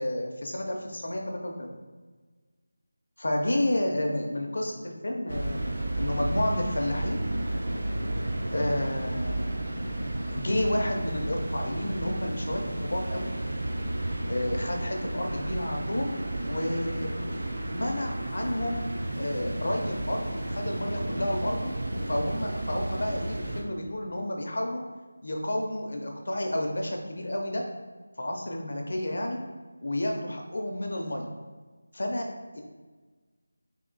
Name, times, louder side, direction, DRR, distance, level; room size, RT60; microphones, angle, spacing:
voice 1, 0.0-1.7 3.2-5.7 6.0-7.2 8.5-9.6 10.3-13.3 14.3-16.1 16.5-17.1 17.7-18.8 19.1-24.8 25.2-27.6 28.2-29.4 29.8-31.3 31.9-32.3 32.5-32.6, left 1 dB, 50° left, 2 dB, 0.5 m, -31 dB
sound 1, 5.3-23.6, right 1 dB, 40° right, 0.4 m, -32 dB
3.6 x 2.7 x 3.8 m, 1.3 s
figure-of-eight pair, 180°, 0 cm